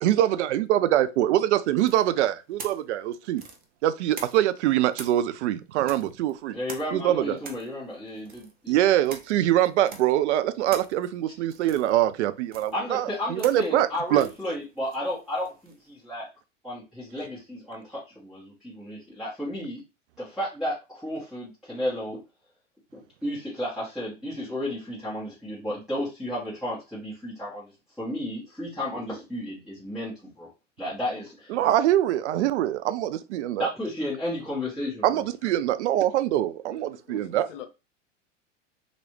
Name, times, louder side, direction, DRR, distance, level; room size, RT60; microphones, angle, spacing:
voice 1, 0.0-3.4 3.8-6.6 6.9-7.4 8.7-14.3 31.5-33.7 35.0-37.5, right 12 dB, 65° right, 0.5 m, -24 dB
sound 1, 1.8-4.6 4.9-15.9, right 4 dB, 25° right, 0.7 m, -45 dB
voice 2, 6.5-8.7 12.7-16.3 16.6-19.8 20.2-22.2 22.9-27.7 28.0-30.5 30.8-31.7 33.6-35.3, left 1 dB, ahead, 1.4 m, -33 dB
voice 3, 36.7-37.7, left 10 dB, 75° left, 0.8 m, -44 dB
3.0 x 2.6 x 3.1 m
hypercardioid pair, 110°, 38 cm